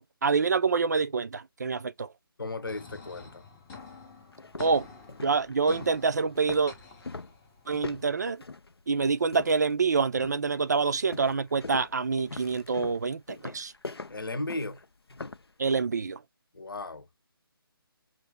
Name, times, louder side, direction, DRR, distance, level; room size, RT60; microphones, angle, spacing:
voice 1, 0.0-2.1 4.6-4.9 5.2-6.7 7.7-8.4 8.9-13.7 15.6-16.2, right 5 dB, 45° right, 0.4 m, -26 dB
voice 2, 2.4-3.4 14.0-14.8 16.5-17.1, left 2 dB, 65° left, 0.8 m, -36 dB
sound 1, 2.7-7.7, left 4 dB, 10° left, 0.6 m, -49 dB
sound 2, 3.1-3.2 3.7-3.8 4.3-9.8 10.1-10.5 11.1-15.5, left 3 dB, 85° left, 0.4 m, -42 dB
5.7 x 2.5 x 3.3 m
figure-of-eight pair, 145°, 13 cm